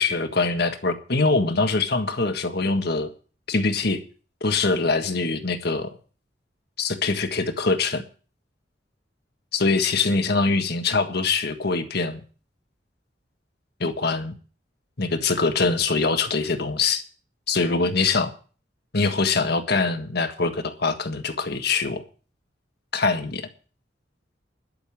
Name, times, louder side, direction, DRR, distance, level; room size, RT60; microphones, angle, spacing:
voice 1, 0.0-3.1 3.5-4.0 4.4-5.9 6.8-8.0 9.5-12.2 13.8-14.3 15.0-17.0 17.5-18.3 18.9-22.0 22.9-23.5, left 3 dB, 60° left, 1.6 m, -23 dB
12.0 x 6.9 x 9.3 m
head